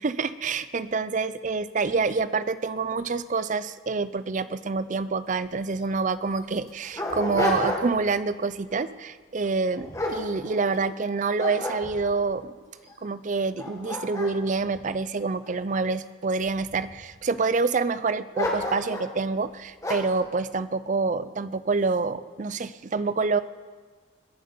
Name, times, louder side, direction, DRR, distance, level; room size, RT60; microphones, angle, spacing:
voice 1, 0.0-12.5 13.0-23.4, right 4 dB, 35° right, 15 dB, 0.4 m, -27 dB
Dog, 5.4-5.5 5.8-5.9 6.5-8.1 8.5-8.8 9.4-10.9 11.4-12.3 12.9-13.0 13.4-15.8 16.4-17.1 18.3-19.1 19.8-20.2, left 1 dB, 15° left, 1.8 m, -31 dB
22.0 x 7.7 x 5.5 m, 1.5 s
head